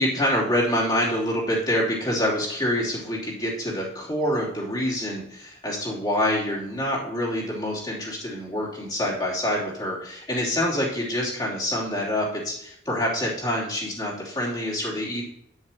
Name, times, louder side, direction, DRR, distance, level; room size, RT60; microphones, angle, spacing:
voice 1, 0.0-15.2, left 1 dB, 20° left, -5 dB, 3.4 m, -26 dB
11.0 x 11.0 x 3.0 m, 0.74 s
head